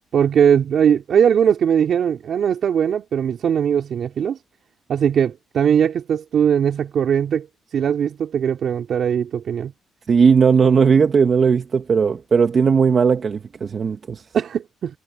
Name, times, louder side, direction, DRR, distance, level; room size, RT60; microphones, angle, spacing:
voice 1, 0.1-4.4 4.9-7.5 7.7-9.7 14.3-15.0, right 8 dB, 60° right, 3.5 m, -19 dB
voice 2, 10.1-14.2, right 6 dB, 45° right, 1.5 m, -17 dB
cardioid pair, 90°, 0 cm